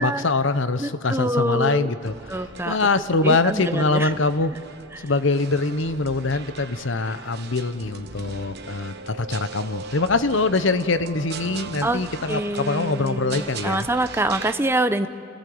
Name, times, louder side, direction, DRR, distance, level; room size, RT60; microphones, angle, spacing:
voice 1, 0.0-4.5 5.0-13.9, left 3 dB, 60° left, 13 dB, 0.9 m, -23 dB
voice 2, 0.8-1.9 2.3-2.8 3.2-4.1 5.0-5.1 11.8-12.0 12.3-15.1, right 1 dB, 10° right, 9 dB, 0.7 m, -25 dB
sound 1, 2.0-14.5, right 5 dB, 50° right, 1.2 m, -39 dB
29.0 x 17.0 x 7.9 m, 2.2 s
head